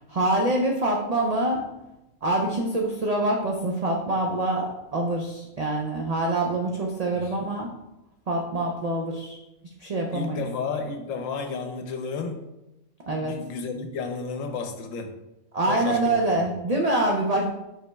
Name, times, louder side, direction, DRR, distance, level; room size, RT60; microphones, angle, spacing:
voice 1, 0.0-1.6 2.2-7.7 8.3-9.4 9.8-10.4 13.1-13.3 15.5-17.5, right 1 dB, 80° right, 0 dB, 0.3 m, -25 dB
voice 2, 10.1-12.4 13.2-15.1 15.7-16.2, left 4 dB, 85° left, 6 dB, 1.0 m, -32 dB
5.1 x 4.2 x 2.2 m, 0.96 s
omnidirectional pair, 1.3 m